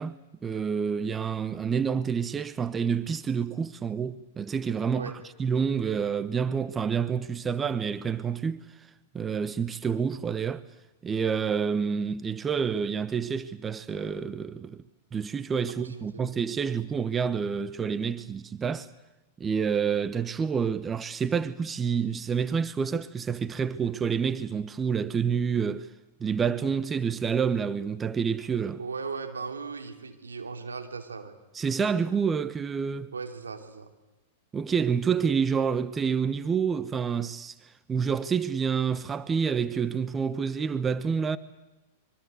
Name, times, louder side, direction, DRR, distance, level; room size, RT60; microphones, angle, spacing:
voice 1, 0.0-5.1 5.4-8.6 9.1-10.7 11.0-14.8 15.1-18.9 19.4-25.9 26.2-28.8 31.5-33.1 34.5-37.5 37.9-41.4, right 6 dB, 20° right, 1.0 m, -28 dB
voice 2, 15.7-16.3 28.8-31.4 33.1-33.9, right 5 dB, 90° right, 3.0 m, -37 dB
25.0 x 23.5 x 8.2 m
hypercardioid pair, 105°, 0 cm